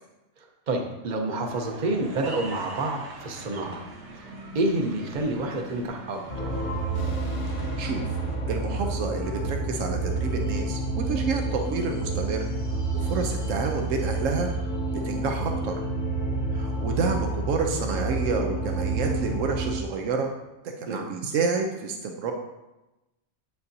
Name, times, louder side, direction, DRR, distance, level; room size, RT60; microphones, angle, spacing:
voice 1, 0.4-3.8 4.1-6.9 20.9-21.1, right 2 dB, 40° right, 3 dB, 0.9 m, -29 dB
sound 1, 1.5-8.4, right 1 dB, 65° right, 1.3 m, -42 dB
sound 2, 6.3-19.8, right 2 dB, 90° left, 1.5 m, -29 dB
sound 3, 6.9-12.3, left 4 dB, 30° left, 0.8 m, -43 dB
voice 2, 7.5-8.0 8.5-12.4 12.9-14.5 15.0-15.7 16.5-20.3 20.6-22.3, right 4 dB, 85° right, 3 dB, 1.0 m, -29 dB
8.2 x 6.6 x 2.7 m, 1.0 s
omnidirectional pair, 1.3 m